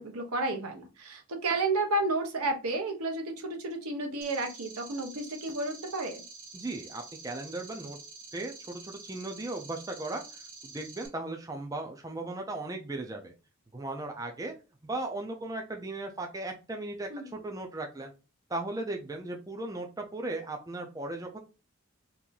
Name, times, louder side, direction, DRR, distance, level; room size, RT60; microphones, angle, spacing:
voice 1, 0.0-6.2 17.1-17.3, right 2 dB, 80° right, 4 dB, 0.8 m, -31 dB
sound 1, 4.2-11.1, right 4 dB, 40° right, 0.9 m, -48 dB
voice 2, 6.5-8.0 8.3-13.3 13.7-14.5 14.8-18.1 18.5-21.4, right 2 dB, 15° right, 2 dB, 0.4 m, -37 dB
2.9 x 2.6 x 3.8 m, 0.30 s
head